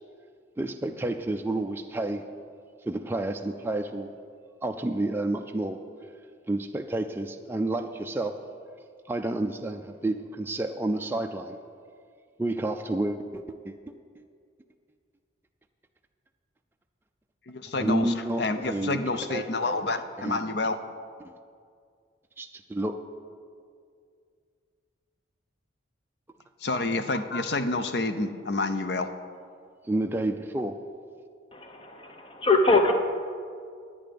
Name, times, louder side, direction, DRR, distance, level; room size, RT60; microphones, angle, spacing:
voice 1, 0.6-2.2 2.9-4.1 4.6-5.8 6.5-8.4 9.1-11.6 12.4-13.8 17.8-19.0 19.3-19.7 20.2-20.4 21.2-21.3 22.4-23.0 29.9-30.7, right 2 dB, 10° right, 4 dB, 0.3 m, -30 dB
voice 2, 17.5-20.8 26.6-29.1, left 2 dB, 60° left, 10 dB, 0.6 m, -29 dB
voice 3, 31.5-32.9, left 3 dB, 30° left, 5 dB, 0.8 m, -23 dB
10.0 x 9.4 x 5.2 m, 2.2 s
head